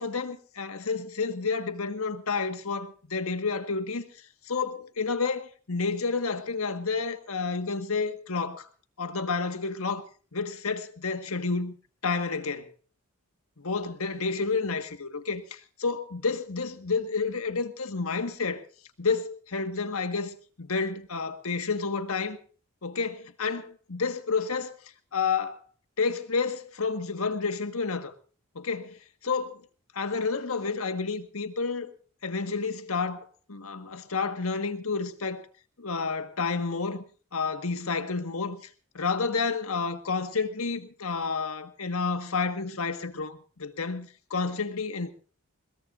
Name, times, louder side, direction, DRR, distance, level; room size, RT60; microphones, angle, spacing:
voice 1, 0.0-4.1 4.5-8.7 9.0-10.0 10.3-11.8 12.0-12.7 13.6-18.6 19.0-22.4 22.8-24.7 25.1-25.6 26.0-28.1 28.5-29.6 29.9-31.9 32.2-35.4 35.8-37.0 37.3-38.6 38.9-45.1, left 4 dB, 75° left, 1.6 m, -30 dB
21.5 x 20.5 x 2.6 m
head